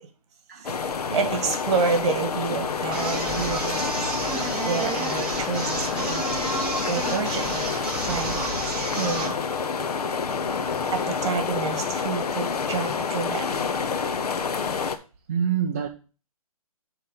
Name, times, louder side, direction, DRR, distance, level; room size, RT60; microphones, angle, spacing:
voice 1, 0.5-1.5 15.3-15.9, right 8 dB, 25° right, 0.3 m, -29 dB
sound 1, 0.6-15.0, left 5 dB, 80° left, 0.8 m, -28 dB
voice 2, 1.1-9.4 10.9-13.7, right 5 dB, 45° right, 1.5 m, -30 dB
sound 2, 2.9-9.4, right 2 dB, 5° right, 1.0 m, -31 dB
8.0 x 3.3 x 5.4 m
hypercardioid pair, 165°, 19 cm